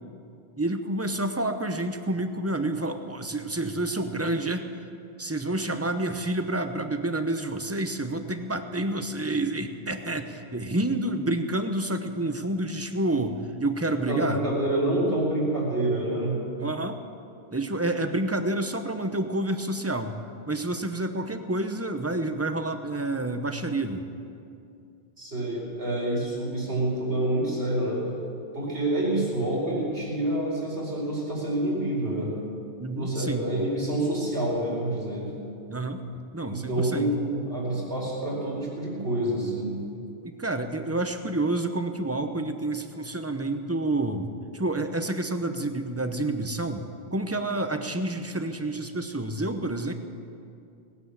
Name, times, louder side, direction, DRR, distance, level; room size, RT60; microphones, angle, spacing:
voice 1, 0.6-4.7 5.2-14.4 16.6-17.0 17.5-20.1 20.5-24.1 32.8-33.5 35.7-36.0 36.3-37.1 40.1-46.8 47.1-49.9, right 2 dB, 15° right, 7 dB, 0.8 m, -29 dB
voice 2, 14.1-16.4 25.2-28.0 28.5-32.3 32.9-35.3 36.4-39.7, right 1 dB, 80° right, -5 dB, 5.1 m, -27 dB
19.0 x 9.8 x 7.3 m, 2.5 s
omnidirectional pair, 1.1 m